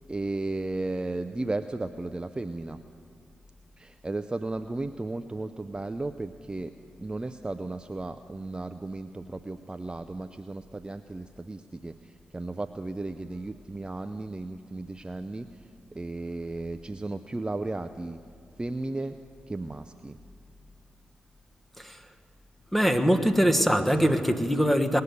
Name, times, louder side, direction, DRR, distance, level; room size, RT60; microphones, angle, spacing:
voice 1, 0.1-2.8 3.8-6.7 7.0-15.6 15.9-18.2 18.6-19.2 19.5-20.2, right 2 dB, 20° right, 9 dB, 0.5 m, -34 dB
voice 2, 22.7-25.0, equal, 5° left, 6 dB, 1.3 m, -23 dB
19.5 x 6.7 x 9.4 m, 2.3 s
supercardioid pair, 40°, 4 cm